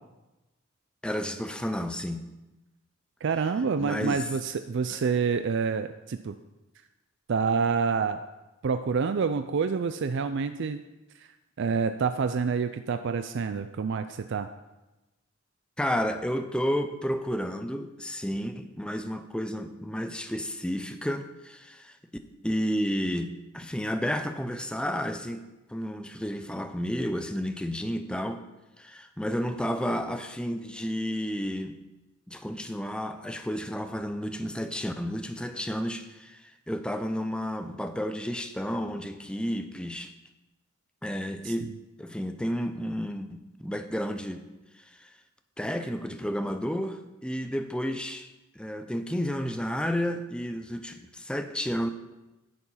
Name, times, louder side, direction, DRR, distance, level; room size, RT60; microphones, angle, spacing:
voice 1, 1.0-2.3 3.8-4.2 4.9-5.0 15.8-22.0 22.4-25.4 25.7-28.4 28.8-31.7 32.3-40.1 41.0-41.7 42.0-44.4 44.8-45.1 45.6-48.3 48.5-51.9, equal, 5° left, 8 dB, 0.6 m, -31 dB
voice 2, 3.2-6.3 7.3-8.2 8.6-10.8 11.6-14.5 41.4-41.7, right 5 dB, 60° right, 9 dB, 0.4 m, -27 dB
10.5 x 7.0 x 5.6 m, 1.0 s
head